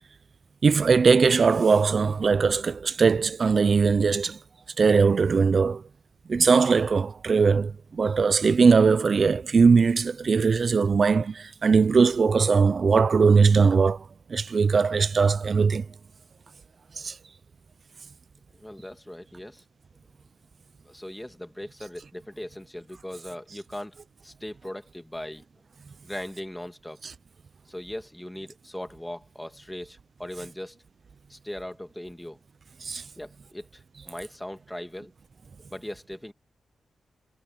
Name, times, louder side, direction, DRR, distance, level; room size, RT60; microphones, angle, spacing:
voice 1, 0.6-4.4 4.8-5.8 6.3-15.9 16.9-17.2 27.0-27.1 32.8-33.0, right 5 dB, 55° right, 0.5 m, -20 dB
voice 2, 18.5-19.6 20.8-24.0 24.2-25.4 26.0-27.0 27.7-30.8 31.3-32.4 33.2-35.1 35.7-36.3, left 1 dB, 10° left, 2.4 m, -39 dB
cardioid pair, 70°, 0 cm